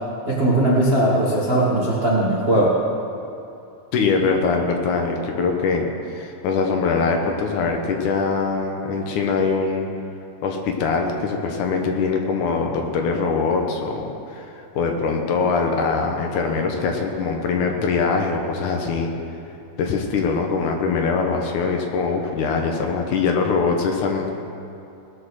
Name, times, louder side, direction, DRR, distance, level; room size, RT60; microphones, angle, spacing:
voice 1, 0.3-2.8, right 1 dB, 45° right, -6 dB, 0.7 m, -19 dB
voice 2, 3.9-9.9 10.4-19.1 19.8-24.3, left 4 dB, 70° left, 2 dB, 2.3 m, -22 dB
19.5 x 6.6 x 6.4 m, 2.7 s
omnidirectional pair, 4.0 m